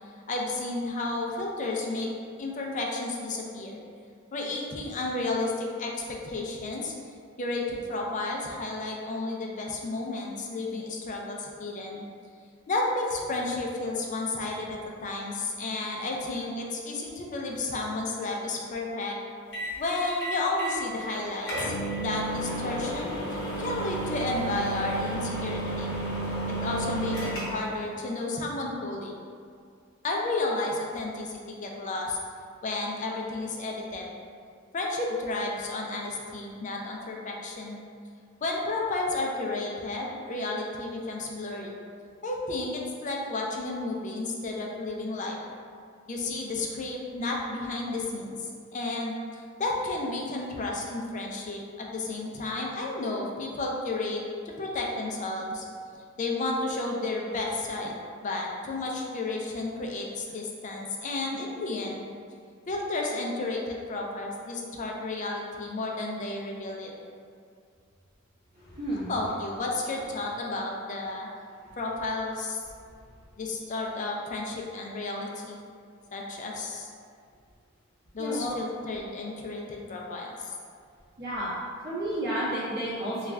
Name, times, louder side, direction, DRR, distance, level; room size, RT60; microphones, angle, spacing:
voice 1, 0.3-2.1 2.4-3.8 4.3-6.9 7.4-12.0 12.7-19.2 19.8-21.7 22.0-25.9 26.3-29.2 30.0-32.2 32.6-34.1 34.7-37.8 38.4-41.8 42.2-45.4 46.1-55.6 56.2-58.0 58.2-62.0 62.7-66.9 69.1-71.3 71.8-72.6 73.4-75.6 76.1-76.9 78.1-80.5, left 2 dB, 40° left, -1 dB, 0.4 m, -32 dB
sound 1, 19.5-19.8 20.2-20.8 21.1-21.2 21.5-27.7, right 1 dB, 60° left, 0.9 m, -32 dB
voice 2, 68.8-69.1 78.2-78.5 81.2-81.5 81.8-83.3, right 1 dB, 55° right, -10 dB, 1.4 m, -31 dB
3.1 x 2.3 x 3.4 m, 2.2 s
head